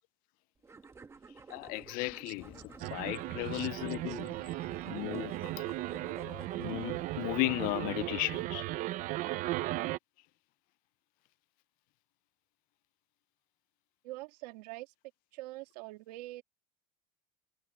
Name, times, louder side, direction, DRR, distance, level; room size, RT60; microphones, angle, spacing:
sound 1, 0.6-6.9, right 4 dB, 15° right, 1.3 m, -53 dB
voice 1, 1.5-4.4 4.9-5.6 6.6-8.7, left 25 dB, 45° left, 0.4 m, -35 dB
Motorcycle, 2.4-8.1, left 8 dB, 25° left, 4.8 m, -56 dB
sound 2, 2.8-10.0, right 17 dB, 40° right, 0.6 m, -36 dB
voice 2, 14.0-14.9 15.3-16.4, right 19 dB, 80° right, 2.4 m, -45 dB
cardioid pair, 155°, 20 cm